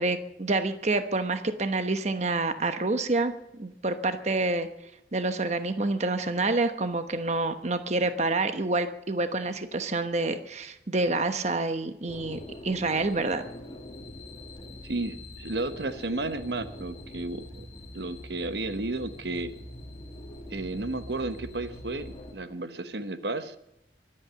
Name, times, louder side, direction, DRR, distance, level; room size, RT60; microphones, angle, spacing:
voice 1, 0.0-4.7 5.1-13.4, right 2 dB, 40° right, 9 dB, 1.0 m, -28 dB
sound 1, 12.1-22.3, left 1 dB, 30° left, 2.1 m, -43 dB
voice 2, 14.8-17.7 17.9-19.5 20.5-23.5, right 2 dB, 65° right, 10 dB, 1.1 m, -33 dB
23.5 x 8.9 x 6.8 m, 0.84 s
head